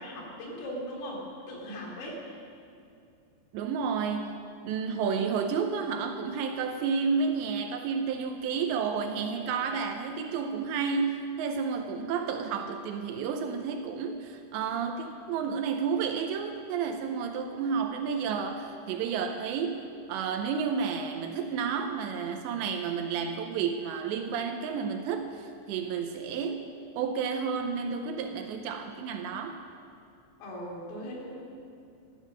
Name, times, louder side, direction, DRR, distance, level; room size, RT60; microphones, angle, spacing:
voice 1, 0.0-2.4 30.4-31.4, equal, 90° left, -2 dB, 5.2 m, -39 dB
voice 2, 3.5-26.6 27.0-29.6, right 6 dB, 80° right, 5 dB, 2.7 m, -31 dB
14.5 x 12.0 x 6.4 m, 2.5 s
omnidirectional pair, 5.6 m